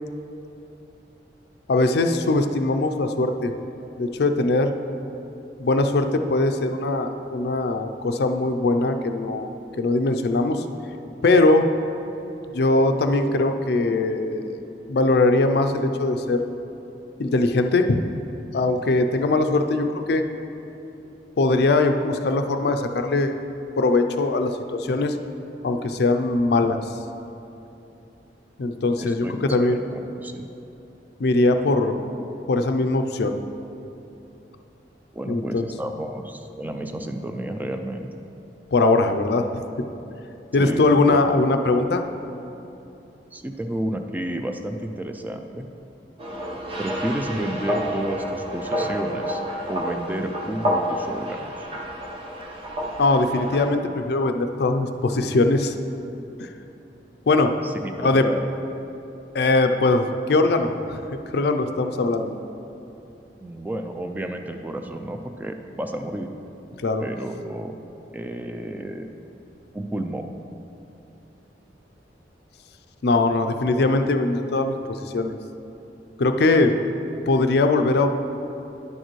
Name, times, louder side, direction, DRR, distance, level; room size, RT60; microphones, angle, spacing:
voice 1, 1.7-3.5 4.0-4.7 5.6-9.5 9.8-10.6 11.2-11.7 12.5-14.6 14.9-16.4 17.2-18.0 18.5-20.2 21.4-23.3 23.8-25.2 25.6-26.8 28.6-29.8 31.2-32.0 32.5-33.4 35.3-35.7 38.7-39.5 40.5-42.0 53.0-55.7 56.4-56.5 57.3-57.5 58.0-58.2 59.3-61.0 61.3-62.4 66.8-67.0 73.0-75.4 76.2-76.7 77.3-78.1, left 2 dB, 65° left, 7 dB, 0.4 m, -21 dB
voice 2, 29.0-30.5 35.1-38.1 40.6-41.3 43.3-45.7 46.8-49.4 49.7-51.5 57.6-58.4 63.4-66.3 67.0-67.7 68.1-69.1 69.7-70.3, right 1 dB, 10° right, 5 dB, 0.3 m, -31 dB
sound 1, 46.2-53.7, equal, 30° right, 0.9 m, -29 dB
10.5 x 6.6 x 3.1 m, 2.9 s
head